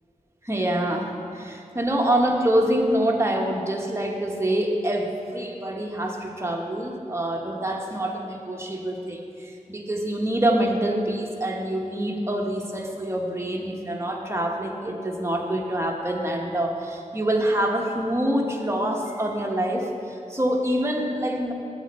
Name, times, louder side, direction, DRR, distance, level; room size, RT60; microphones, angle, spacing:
voice 1, 0.4-21.5, right 1 dB, 20° right, 0 dB, 1.0 m, -26 dB
8.7 x 7.6 x 4.2 m, 2.6 s
wide cardioid pair, 70°, 14 cm